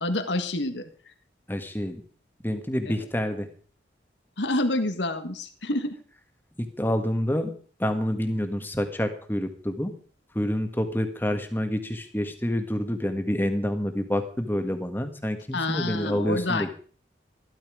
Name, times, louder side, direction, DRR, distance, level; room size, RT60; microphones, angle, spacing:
voice 1, 0.0-0.9 4.4-6.0 15.5-16.7, left 2 dB, 75° left, 8 dB, 1.8 m, -28 dB
voice 2, 1.5-2.0 2.4-3.5 6.6-7.5 7.8-9.9 10.3-16.7, equal, 10° left, 7 dB, 1.6 m, -28 dB
15.0 x 12.5 x 5.0 m, 0.43 s
head